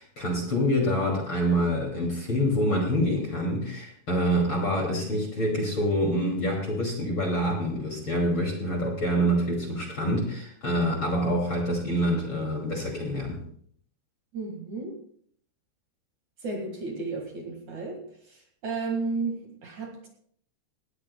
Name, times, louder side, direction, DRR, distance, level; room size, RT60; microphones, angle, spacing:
voice 1, 0.0-13.4, equal, 35° left, 0 dB, 2.7 m, -26 dB
voice 2, 14.3-15.0 16.4-18.0 18.3-20.1, right 3 dB, 55° right, 1 dB, 2.8 m, -33 dB
19.5 x 15.5 x 2.2 m, 0.62 s
omnidirectional pair, 4.8 m